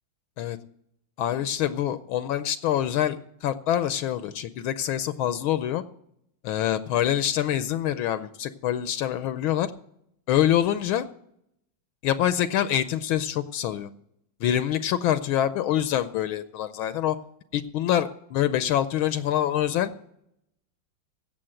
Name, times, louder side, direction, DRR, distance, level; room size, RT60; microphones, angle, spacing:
voice 1, 1.2-5.8 6.4-9.7 10.3-11.1 12.0-13.9 14.4-17.2 17.5-19.9, left 11 dB, 75° left, 12 dB, 1.4 m, -25 dB
16.5 x 6.9 x 7.6 m, 0.75 s
omnidirectional pair, 2.3 m